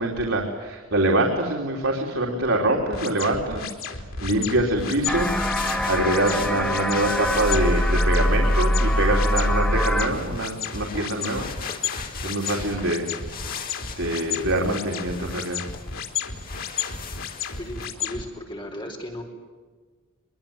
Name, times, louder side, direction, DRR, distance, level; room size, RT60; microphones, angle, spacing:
voice 1, 0.0-3.7 4.2-5.3 5.9-11.5 11.7-11.8 12.2-13.2 14.0-15.6, right 1 dB, 75° right, 0 dB, 3.8 m, -24 dB
sound 1, 2.9-18.2, left 6 dB, 80° left, 3.6 m, -33 dB
sound 2, 4.8-17.9, left 6 dB, 45° left, 3.7 m, -40 dB
sound 3, 5.1-10.1, equal, 5° left, 1.9 m, -23 dB
voice 2, 17.6-19.2, left 1 dB, 25° left, 2 dB, 4.4 m, -36 dB
24.5 x 23.0 x 9.0 m, 1.5 s
head